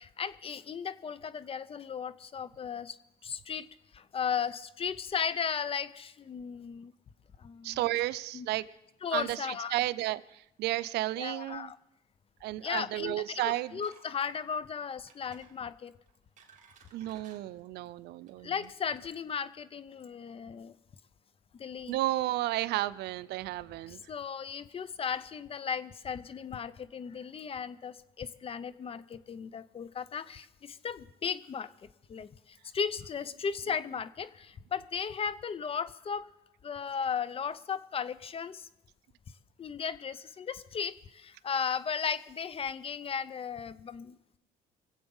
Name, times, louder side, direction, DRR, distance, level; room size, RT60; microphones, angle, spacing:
voice 1, 0.0-3.0 3.2-3.7 3.9-6.9 7.4-7.8 8.3-8.5 9.0-9.8 11.2-11.8 12.6-15.9 18.4-20.7 21.5-21.9 23.9-36.3 36.6-38.7 39.6-44.4, left 7 dB, 35° left, 17 dB, 0.7 m, -36 dB
voice 2, 7.6-8.7 9.1-11.7 12.4-13.8 16.9-18.7 21.9-24.0 33.7-33.8, right 16 dB, 80° right, 17 dB, 0.5 m, -33 dB
sound 1, 13.5-14.1 14.3-14.5 15.1-15.5 16.1-17.4 18.1-18.3 18.6-18.7, right 6 dB, 45° right, 2.6 m, -58 dB
23.5 x 8.0 x 5.5 m, 0.84 s
cardioid pair, 110°, 17 cm